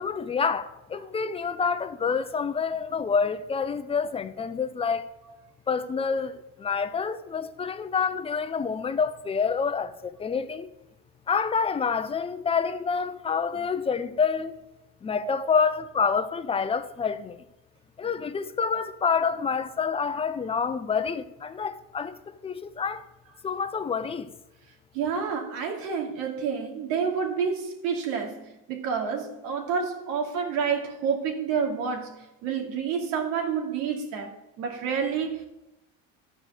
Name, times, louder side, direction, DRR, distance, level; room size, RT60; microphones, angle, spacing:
voice 1, 0.0-5.1 5.7-10.7 11.3-14.6 15.0-17.4 18.0-23.0 23.4-24.3, left 5 dB, 20° left, 0.6 m, -27 dB
voice 2, 24.9-35.5, right 6 dB, 80° right, 2.5 m, -29 dB
12.5 x 4.9 x 6.6 m
supercardioid pair, 120°, 31 cm